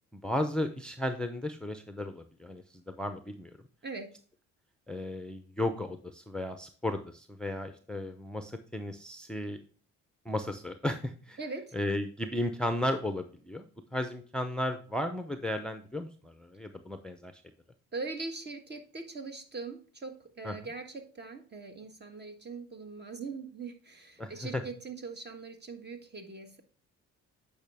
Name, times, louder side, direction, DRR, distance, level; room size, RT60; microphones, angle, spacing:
voice 1, 0.1-3.5 4.9-9.6 10.3-11.4 11.7-13.7 13.9-17.4 20.4-20.5 24.2-24.6, left 1 dB, 5° left, 7 dB, 0.6 m, -34 dB
voice 2, 3.8-4.1 11.4-11.7 17.9-26.6, right 4 dB, 35° right, 6 dB, 1.5 m, -41 dB
8.9 x 5.5 x 3.5 m, 0.43 s
cardioid pair, 90°, 30 cm